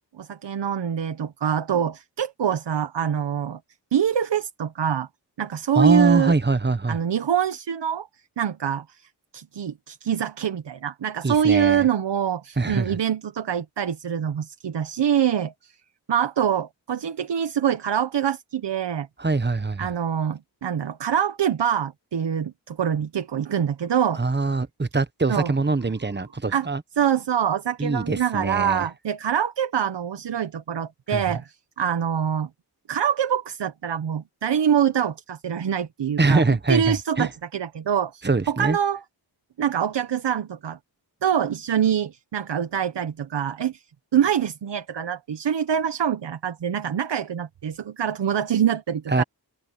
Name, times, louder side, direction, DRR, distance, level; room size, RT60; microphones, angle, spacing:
voice 1, 0.2-3.6 3.9-5.1 5.4-6.4 6.9-8.1 8.4-9.1 9.3-15.8 16.1-19.1 19.8-24.2 25.3-25.5 26.5-26.7 27.0-31.4 31.8-32.5 32.9-39.0 39.6-40.8 41.2-43.8 44.1-49.2, right 8 dB, 90° right, 1.0 m, -25 dB
voice 2, 5.7-7.0 11.2-11.9 12.6-13.0 19.2-19.9 24.1-26.8 27.8-28.9 31.1-31.2 36.2-37.3 38.2-38.8 49.1-49.2, right 3 dB, 25° right, 1.2 m, -23 dB
cardioid pair, 50°, 41 cm